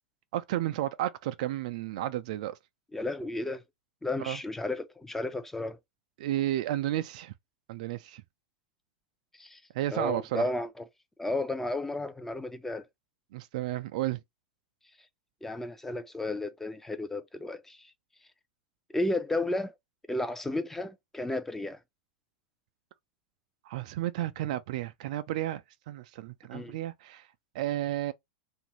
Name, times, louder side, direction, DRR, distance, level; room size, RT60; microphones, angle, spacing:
voice 1, 0.3-2.6 4.2-4.4 6.2-7.3 7.7-8.2 9.7-10.5 13.3-14.2 23.7-27.2 27.5-28.1, right 14 dB, 55° right, 0.3 m, -32 dB
voice 2, 2.9-3.6 4.0-5.8 9.4-9.6 9.9-10.8 11.2-12.9 15.4-17.9 18.9-19.7 20.1-21.8 26.5-26.8, left 2 dB, 5° left, 0.5 m, -33 dB
2.6 x 2.5 x 2.9 m
hypercardioid pair, 100°, 4 cm